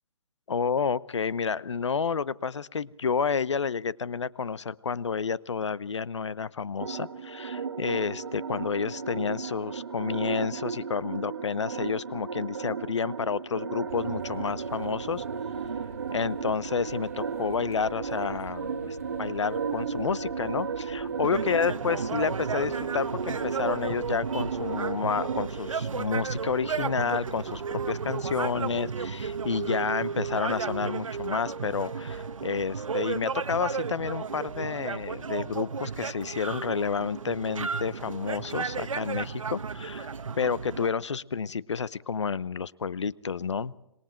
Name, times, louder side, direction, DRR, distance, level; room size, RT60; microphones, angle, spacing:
voice 1, 0.5-15.2 16.1-40.1 40.4-43.7, left 6 dB, 60° left, 19 dB, 0.9 m, -30 dB
sound 1, 6.8-25.5, right 5 dB, 50° right, 1.4 m, -35 dB
sound 2, 13.9-29.8, right 5 dB, 25° right, 0.9 m, -46 dB
sound 3, 21.2-40.9, right 5 dB, 70° right, 1.2 m, -33 dB
26.5 x 21.5 x 4.5 m, 0.82 s
hypercardioid pair, 175°, 17 cm